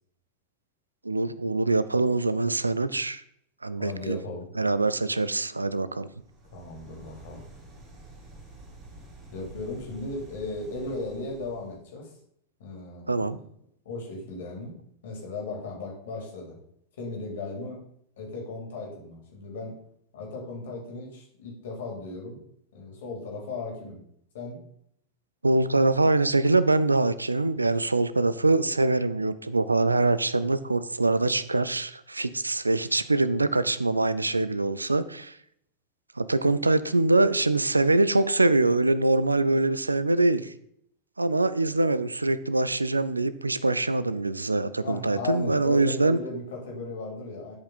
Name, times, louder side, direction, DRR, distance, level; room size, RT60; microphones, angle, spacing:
voice 1, 1.0-3.2 3.6-4.2 4.6-6.1 13.1-13.4 25.4-35.4 36.2-40.5 41.2-46.2, right 2 dB, 80° right, 16 dB, 0.4 m, -24 dB
voice 2, 3.8-4.4 6.5-7.4 9.3-12.1 12.6-13.2 13.8-14.8 15.0-16.6 17.0-17.8 18.2-19.7 20.1-22.4 22.7-24.0 24.3-24.6 44.8-47.5, left 3 dB, 60° left, 0 dB, 3.2 m, -36 dB
sound 1, 6.1-11.8, right 2 dB, 35° right, 3.3 m, -49 dB
11.0 x 5.2 x 4.0 m, 0.70 s
figure-of-eight pair, 90°, 0 cm